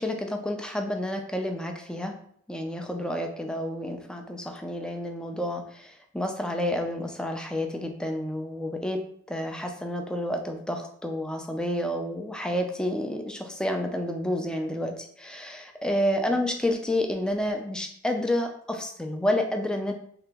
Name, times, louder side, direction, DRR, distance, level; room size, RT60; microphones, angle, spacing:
voice 1, 0.0-2.1 2.5-9.0 9.3-19.9, left 1 dB, 5° left, 4 dB, 0.4 m, -29 dB
2.9 x 2.8 x 3.4 m, 0.64 s
head